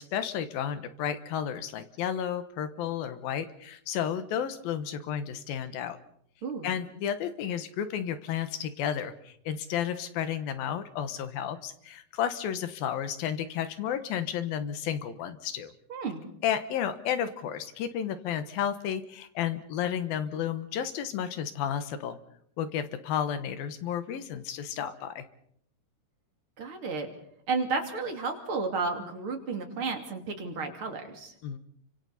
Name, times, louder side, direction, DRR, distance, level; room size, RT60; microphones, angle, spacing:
voice 1, 0.0-6.0 6.6-15.7 16.4-22.2 22.6-25.2 31.4-31.6, left 9 dB, 75° left, 11 dB, 2.9 m, -32 dB
voice 2, 6.4-6.7 15.9-16.2 26.6-27.1 27.5-31.3, right 4 dB, 40° right, 3 dB, 3.0 m, -32 dB
29.5 x 25.5 x 4.2 m, 0.68 s
omnidirectional pair, 4.4 m